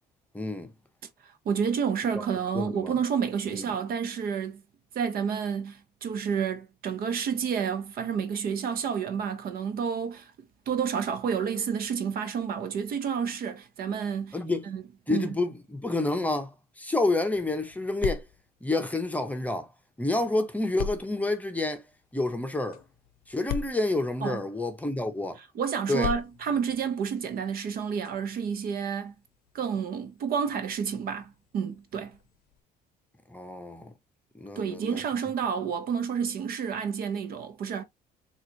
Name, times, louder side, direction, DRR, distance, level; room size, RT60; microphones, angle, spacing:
voice 1, 0.3-0.7 2.1-2.2 2.5-2.9 3.5-3.6 14.3-14.7 15.1-18.3 18.6-19.7 20.0-21.8 22.1-22.8 23.3-25.4 25.9-26.1 33.3-33.9 34.3-35.0, left 2 dB, 10° left, 0.7 m, -29 dB
voice 2, 1.2-4.6 4.9-14.4 14.6-14.8 15.1-15.4 24.2-24.4 25.5-29.1 29.5-32.2 34.6-37.8, right 7 dB, 60° right, 0.8 m, -30 dB
sound 1, 17.3-19.7 20.8-24.7 25.9-32.6, left 8 dB, 60° left, 0.6 m, -41 dB
3.9 x 2.5 x 2.9 m
cardioid pair, 110°, 17 cm